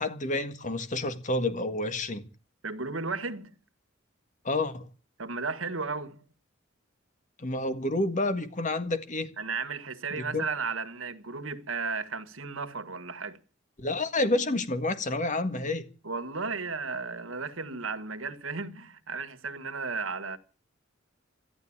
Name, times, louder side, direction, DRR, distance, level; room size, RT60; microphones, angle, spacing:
voice 1, 0.0-2.2 4.4-4.9 7.4-9.3 10.1-10.4 13.8-15.8, left 2 dB, 40° left, 1.8 m, -29 dB
voice 2, 2.6-3.6 5.2-6.2 9.4-13.4 16.0-20.4, right 4 dB, 80° right, 1.7 m, -34 dB
14.0 x 11.0 x 8.8 m
head